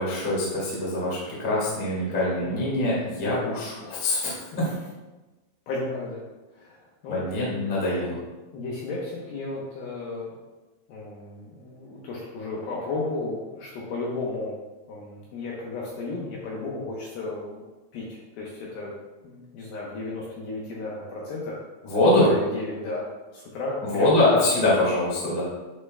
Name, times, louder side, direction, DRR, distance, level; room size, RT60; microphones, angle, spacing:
voice 1, 0.0-4.6 7.1-8.2 21.9-22.3 23.8-25.4, left 2 dB, 40° left, -7 dB, 0.7 m, -24 dB
voice 2, 5.7-6.2 6.6-6.8 7.0-7.4 8.5-10.4 10.9-14.6 14.9-17.6 17.9-18.9 19.2-23.0 23.3-24.2, left 2 dB, 75° left, -4 dB, 2.3 m, -34 dB
9.5 x 5.8 x 2.2 m, 1.2 s
omnidirectional pair, 5.3 m